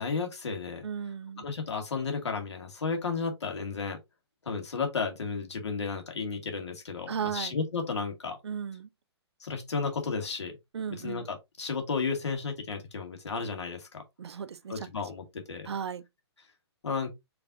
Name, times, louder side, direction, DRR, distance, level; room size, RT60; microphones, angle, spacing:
voice 1, 0.0-0.9 1.4-4.0 4.4-8.4 9.4-10.5 11.0-14.0 14.7-15.7 16.8-17.1, left 5 dB, 85° left, 2.2 m, -33 dB
voice 2, 0.8-1.5 7.1-7.5 8.4-8.9 10.7-11.3 14.2-14.9 15.7-16.0, right 7 dB, 70° right, 0.6 m, -35 dB
5.5 x 3.4 x 2.6 m
hypercardioid pair, 165°, 14 cm